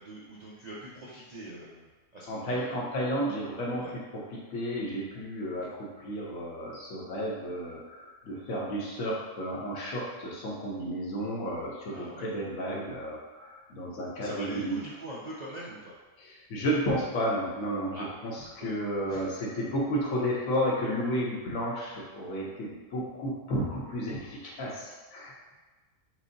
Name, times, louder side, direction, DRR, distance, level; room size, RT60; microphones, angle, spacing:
voice 1, 0.0-2.6 3.8-3.9 11.9-12.3 14.2-15.8 17.9-18.1 18.6-18.7 19.1-19.2, right 1 dB, 65° right, -6 dB, 0.4 m, -42 dB
voice 2, 2.3-14.8 16.2-25.6, equal, 80° left, -4 dB, 1.2 m, -32 dB
6.0 x 2.0 x 2.6 m, 1.3 s
omnidirectional pair, 1.4 m